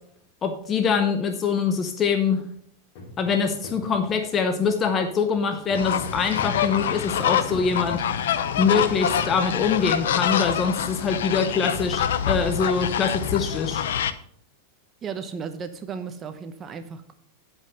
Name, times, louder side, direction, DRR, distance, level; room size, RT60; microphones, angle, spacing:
voice 1, 0.4-2.4 3.2-8.0 8.6-13.8, left 5 dB, 25° left, 6 dB, 0.8 m, -24 dB
sound 1, 3.0-9.5 10.1-10.2 10.5-10.8 11.1-11.2 11.9-12.0 12.2-12.5, equal, 50° left, 2.9 m, -43 dB
sound 2, 5.7-14.1, left 9 dB, 85° left, 0.6 m, -26 dB
voice 2, 15.0-17.1, right 6 dB, 25° right, 9 dB, 0.7 m, -35 dB
9.4 x 5.3 x 5.6 m, 0.66 s
supercardioid pair, 145°, 0 cm